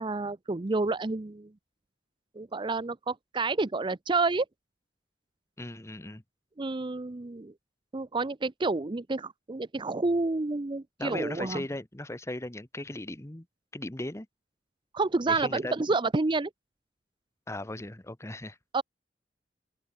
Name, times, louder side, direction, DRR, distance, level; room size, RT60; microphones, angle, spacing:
voice 1, 0.0-1.5 2.3-4.5 6.6-7.5 7.9-11.6 14.9-16.5 18.7-18.8, right 3 dB, 25° right, 0.6 m, -29 dB
voice 2, 5.6-6.2 11.0-13.5 13.7-14.3 15.3-15.7 17.5-18.6, left 1 dB, 15° left, 1.0 m, -37 dB
head